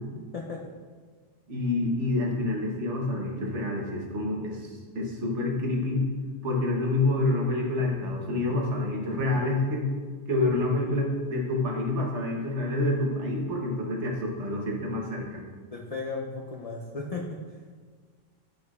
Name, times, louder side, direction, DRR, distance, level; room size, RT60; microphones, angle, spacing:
voice 1, 1.5-6.1 6.4-9.9 10.3-15.4, left 2 dB, 65° right, -1 dB, 1.3 m, -27 dB
voice 2, 15.7-17.4, left 3 dB, 65° left, -1 dB, 0.3 m, -35 dB
8.0 x 5.1 x 2.4 m, 1.5 s
omnidirectional pair, 1.3 m